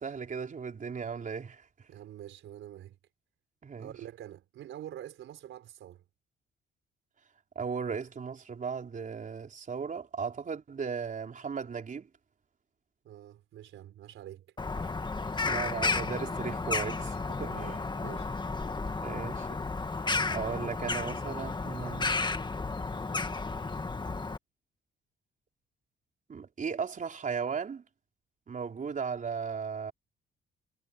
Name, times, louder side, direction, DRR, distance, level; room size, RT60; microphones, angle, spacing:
voice 1, 0.0-1.6 3.6-3.9 7.6-12.1 14.8-14.9 15.4-17.7 19.0-19.5 20.3-22.2 26.3-27.8 28.5-29.9, right 6 dB, 40° right, 4.2 m, -36 dB
voice 2, 1.9-2.9 3.8-6.0 13.0-14.5 17.4-18.3, right 11 dB, 80° right, 4.8 m, -46 dB
Bird vocalization bird call bird song, 14.6-24.4, left 3 dB, 25° left, 1.9 m, -33 dB
cardioid pair, 90°, 20 cm